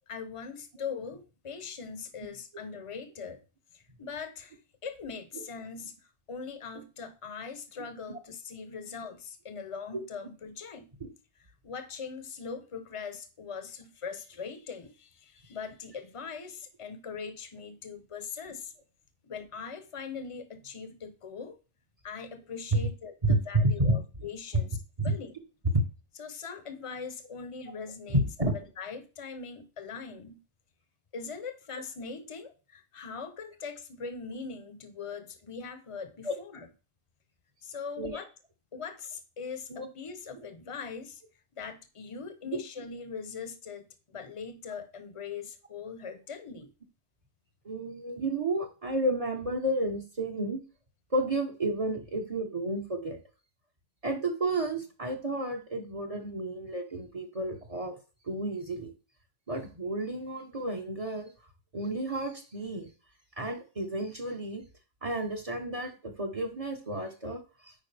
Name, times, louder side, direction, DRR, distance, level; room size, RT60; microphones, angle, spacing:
voice 1, 0.1-3.4 3.7-5.9 6.3-10.9 11.6-18.7 19.2-21.6 22.0-24.8 25.0-25.3 26.2-28.2 28.5-30.4 31.1-36.7 37.6-38.3 38.7-41.2 41.5-46.7, left 5 dB, 35° left, 0.8 m, -41 dB
voice 2, 23.2-24.0 25.0-25.1 25.7-25.8 28.1-28.5 36.2-36.3 38.0-38.2 39.7-39.9 42.5-42.6 47.6-50.6 51.1-53.2 54.0-57.9 58.2-58.9 59.5-61.3 61.7-62.9 63.4-64.6 65.0-67.7, right 1 dB, 35° right, 1.2 m, -31 dB
9.0 x 5.0 x 3.4 m
omnidirectional pair, 1.0 m